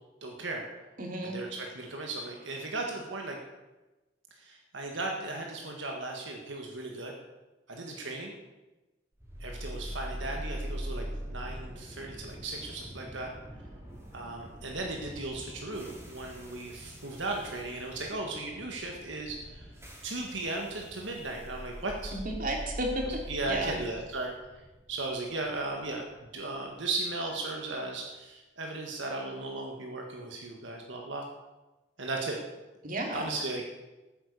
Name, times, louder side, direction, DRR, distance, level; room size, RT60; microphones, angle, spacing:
voice 1, 0.2-0.7 1.2-3.4 4.4-7.1 7.7-8.3 9.4-13.3 14.1-19.7 20.0-22.2 23.1-24.3 24.9-31.2 32.0-32.4 33.1-33.7, right 2 dB, 80° right, 1 dB, 1.7 m, -36 dB
voice 2, 1.0-1.4 22.1-23.2 23.5-23.8 32.8-33.3, right 1 dB, 45° right, 1 dB, 2.9 m, -33 dB
sound 1, 9.2-27.3, equal, 15° right, 3.2 m, -43 dB
14.5 x 9.0 x 6.8 m, 1.1 s
head